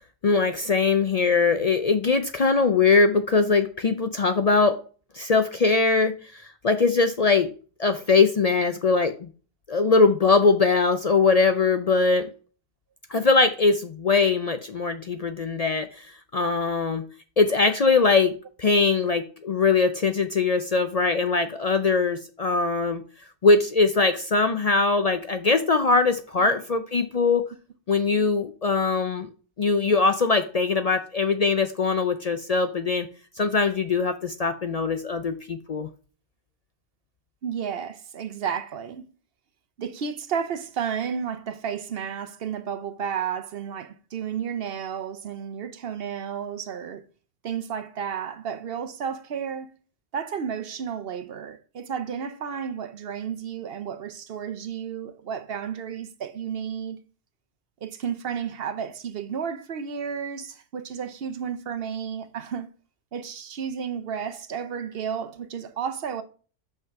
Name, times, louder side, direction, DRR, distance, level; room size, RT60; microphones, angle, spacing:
voice 1, 0.2-4.8 5.1-7.5 7.8-9.3 9.7-12.3 13.1-17.0 17.4-23.0 23.4-27.4 27.9-29.3 29.6-33.1 33.4-35.9, left 4 dB, 45° left, 0.5 m, -21 dB
voice 2, 37.4-39.0 39.8-47.0 47.4-49.7 50.1-57.0 57.8-62.7 63.1-66.2, right 7 dB, 60° right, 0.9 m, -32 dB
5.8 x 5.5 x 4.6 m
omnidirectional pair, 1.1 m